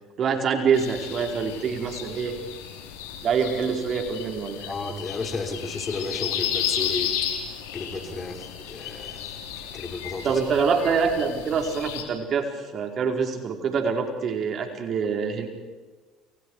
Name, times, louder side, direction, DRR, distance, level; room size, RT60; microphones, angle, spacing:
voice 1, 0.2-2.3 3.2-4.7 10.2-12.5 12.7-15.5, right 6 dB, 50° right, 3 dB, 5.0 m, -25 dB
sound 1, 0.7-12.0, left 9 dB, 85° left, 4.6 m, -33 dB
voice 2, 4.7-7.1 7.7-9.3 9.7-10.4, left 3 dB, 35° left, 3 dB, 6.0 m, -33 dB
30.0 x 29.5 x 5.0 m, 1.3 s
supercardioid pair, 80°, 0 cm